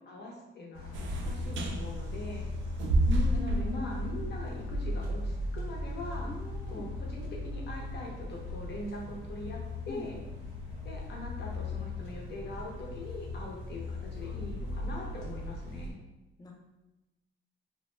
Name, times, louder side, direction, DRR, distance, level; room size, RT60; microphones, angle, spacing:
voice 1, 0.0-2.5 3.3-6.3 6.7-10.2 10.8-16.0, left 2 dB, 55° left, -1 dB, 0.7 m, -42 dB
sound 1, 0.7-15.9, left 4 dB, 90° left, 0.9 m, -41 dB
sound 2, 0.9-15.9, right 1 dB, 70° right, 0.4 m, -35 dB
voice 2, 3.1-3.8 6.3-6.9 9.9-10.0 16.4-16.5, left 1 dB, 20° left, 0 dB, 0.5 m, -39 dB
2.2 x 2.1 x 3.1 m, 1.0 s
cardioid pair, 95°, 20 cm